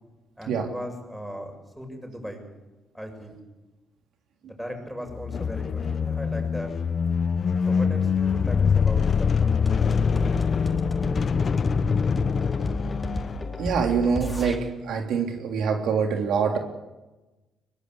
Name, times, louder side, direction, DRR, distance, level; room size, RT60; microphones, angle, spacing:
voice 1, 0.4-2.5 2.9-3.4 4.4-6.7 7.7-9.9, equal, ahead, 3 dB, 7.2 m, -37 dB
sound 1, 5.1-13.9, left 6 dB, 45° left, 0.7 m, -24 dB
sound 2, 9.7-14.6, left 1 dB, 15° left, 4.2 m, -32 dB
voice 2, 13.6-16.6, right 6 dB, 80° right, 3 dB, 3.3 m, -25 dB
22.5 x 19.5 x 8.2 m, 1.1 s
cardioid pair, 90°, 0 cm